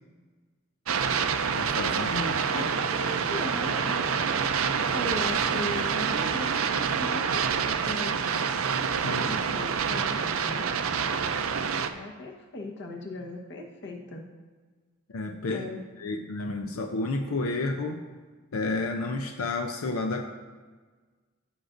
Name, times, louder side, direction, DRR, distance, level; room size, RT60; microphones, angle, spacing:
sound 1, 0.9-11.9, right 6 dB, 75° right, 0.5 m, -27 dB
voice 1, 1.6-2.4 9.0-9.4 15.1-15.7 16.0-18.0 18.5-20.3, left 3 dB, 90° left, 3 dB, 0.6 m, -31 dB
voice 2, 2.5-8.2 9.3-11.3 11.9-14.2 15.5-15.8, left 1 dB, 55° left, 0 dB, 1.1 m, -38 dB
14.5 x 6.4 x 2.6 m, 1.4 s
head